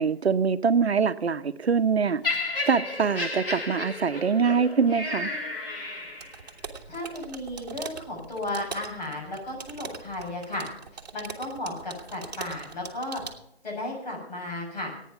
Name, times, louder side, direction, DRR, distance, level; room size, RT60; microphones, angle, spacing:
voice 1, 0.0-2.2 2.7-5.3, right 6 dB, 75° right, 10 dB, 0.9 m, -24 dB
Laughter, 2.2-6.5 7.3-7.5, left 3 dB, 55° left, 3.2 m, -32 dB
sound 1, 6.2-13.4, right 5 dB, 40° right, 1.5 m, -42 dB
voice 2, 6.9-10.7 11.1-13.2 13.6-14.9, left 1 dB, 40° left, -1 dB, 7.1 m, -34 dB
16.0 x 9.3 x 5.9 m, 0.74 s
hypercardioid pair, 165°, 32 cm